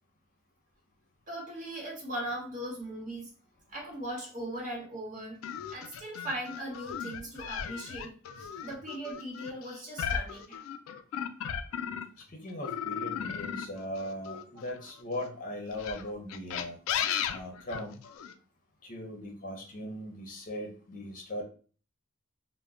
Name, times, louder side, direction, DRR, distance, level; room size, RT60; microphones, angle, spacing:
voice 1, 1.3-3.3 3.7-10.6, right 1 dB, 40° right, 1.0 m, -39 dB
sound 1, 5.4-12.2 12.6-15.0 15.7-18.3, left 8 dB, 80° left, 0.3 m, -36 dB
voice 2, 12.3-16.8 17.3-18.0 18.8-21.4, left 1 dB, 40° left, 0.6 m, -39 dB
2.1 x 2.1 x 3.5 m
head